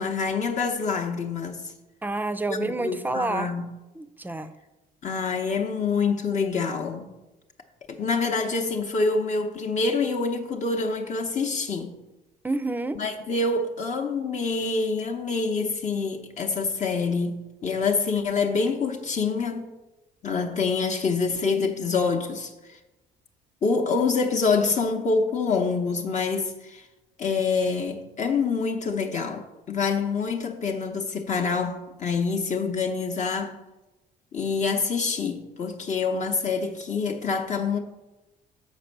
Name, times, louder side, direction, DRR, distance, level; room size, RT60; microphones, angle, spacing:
voice 1, 0.0-1.7 2.5-3.7 5.0-7.1 7.9-11.9 12.9-19.7 20.2-22.8 23.6-26.9 27.2-33.6 34.3-37.8, left 4 dB, 45° left, 0.8 m, -26 dB
voice 2, 2.0-3.5 4.0-4.5 12.4-13.0, right 2 dB, 10° right, 0.5 m, -29 dB
6.6 x 5.2 x 6.6 m
cardioid pair, 110°, 17 cm